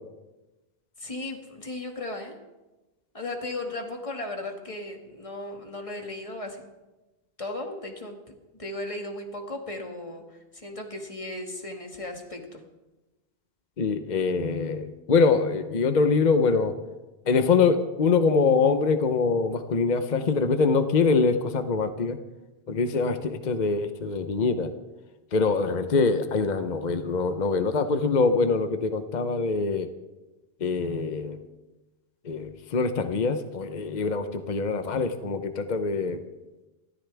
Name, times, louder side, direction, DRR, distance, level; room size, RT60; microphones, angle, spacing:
voice 1, 1.0-2.4 3.1-6.6 7.4-12.6, left 2 dB, 30° left, 2 dB, 2.1 m, -36 dB
voice 2, 13.8-16.7 17.3-22.2 22.7-24.7 25.3-29.9 30.6-31.4 32.2-36.2, left 4 dB, 45° left, 8 dB, 1.0 m, -24 dB
28.0 x 14.0 x 3.5 m, 1.1 s
omnidirectional pair, 1.0 m